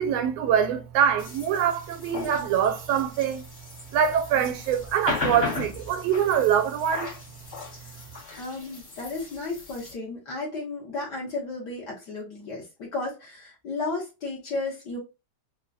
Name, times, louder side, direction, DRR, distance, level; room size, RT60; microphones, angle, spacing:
voice 1, 0.0-3.4 3.9-7.1, right 8 dB, 80° right, 1.4 m, -24 dB
sound 1, 1.2-9.9, left 3 dB, 40° left, 0.8 m, -37 dB
voice 2, 8.4-15.0, left 3 dB, 65° left, 1.0 m, -33 dB
5.4 x 2.2 x 2.3 m
omnidirectional pair, 3.4 m